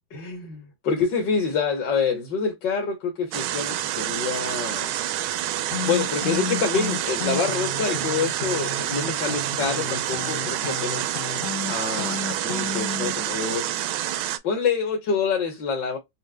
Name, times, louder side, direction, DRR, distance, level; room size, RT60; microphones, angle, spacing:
voice 1, 0.1-4.9 5.9-11.1 11.7-14.1 14.4-16.0, left 5 dB, 65° left, 1.7 m, -27 dB
sound 1, 3.3-14.4, right 13 dB, 90° right, 1.4 m, -28 dB
sound 2, 5.7-13.1, left 6 dB, 85° left, 2.3 m, -33 dB
6.4 x 2.1 x 2.2 m
omnidirectional pair, 2.2 m